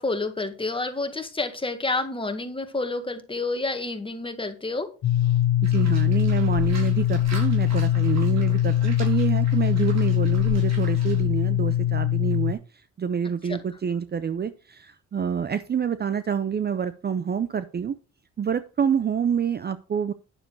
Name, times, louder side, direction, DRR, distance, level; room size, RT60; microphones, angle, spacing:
voice 1, 0.0-4.9 13.4-13.6, left 3 dB, 15° left, 7 dB, 1.7 m, -29 dB
sound 1, 5.0-12.5, left 12 dB, 65° left, 1.2 m, -22 dB
voice 2, 5.6-12.6 13.0-17.9 18.4-20.1, right 7 dB, 35° right, 14 dB, 0.6 m, -27 dB
Livestock farm animals working animals, 5.6-11.2, right 3 dB, 60° right, 4.4 m, -44 dB
9.9 x 6.8 x 4.6 m, 0.35 s
cardioid pair, 90°, 30 cm